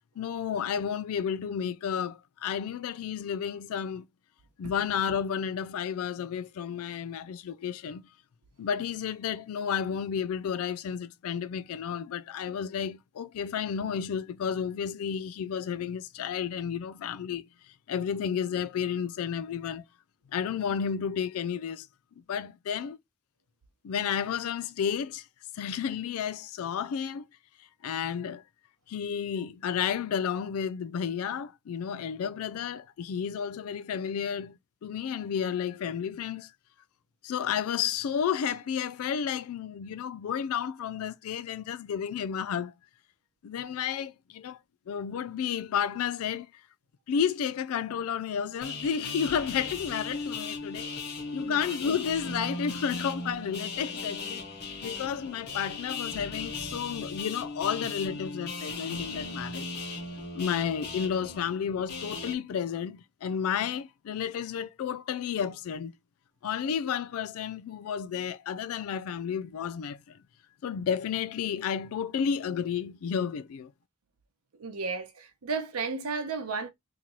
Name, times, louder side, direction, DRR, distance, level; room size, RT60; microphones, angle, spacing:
voice 1, 0.2-4.1 4.6-8.1 8.6-19.8 20.3-21.9 22.3-23.0 23.8-25.3 25.5-27.2 27.6-28.4 28.9-36.5 37.2-42.7 43.4-44.6 44.9-46.6 47.1-59.7 60.3-65.9 66.4-70.2 70.6-73.7, left 7 dB, 75° left, 0.3 m, -32 dB
sound 1, 48.6-62.3, left 3 dB, 45° left, 1.5 m, -37 dB
voice 2, 74.6-76.7, right 4 dB, 80° right, 0.7 m, -33 dB
3.8 x 2.9 x 2.9 m
head